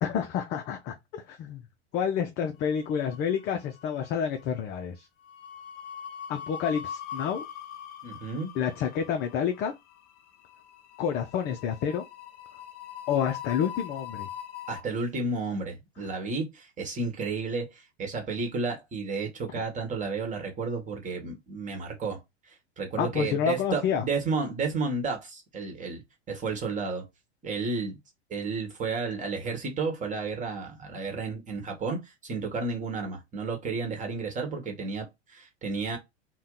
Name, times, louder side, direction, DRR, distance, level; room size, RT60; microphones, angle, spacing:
voice 1, 0.0-1.6 1.9-5.1 6.3-7.4 8.6-9.7 11.0-12.0 13.1-14.3 23.0-24.0, left 8 dB, 30° left, 0.4 m, -29 dB
sound 1, 2.8-3.5 3.8-4.1 5.3-14.8, left 9 dB, 50° left, 0.8 m, -42 dB
voice 2, 8.0-8.5 14.7-22.2 22.8-26.0 26.3-27.0 27.4-28.0 28.3-36.0, right 4 dB, 20° right, 1.2 m, -32 dB
2.7 x 2.2 x 3.6 m
hypercardioid pair, 100°, 35 cm